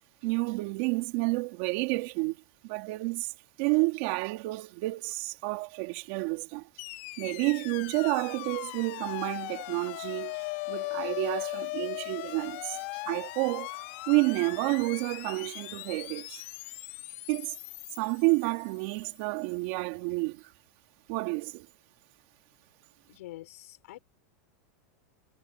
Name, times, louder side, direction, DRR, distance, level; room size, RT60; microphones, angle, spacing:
voice 1, 0.2-2.4 2.6-3.3 3.6-6.6 7.2-10.4 10.7-12.8 13.1-13.8 14.1-16.4 17.3-17.5 18.0-20.4 21.1-21.6, right 26 dB, 45° right, 3.3 m, -30 dB
sound 1, 6.8-19.0, left 23 dB, 50° left, 2.7 m, -39 dB
voice 2, 23.1-24.0, left 16 dB, 70° left, 5.3 m, -46 dB
supercardioid pair, 170°, 8 cm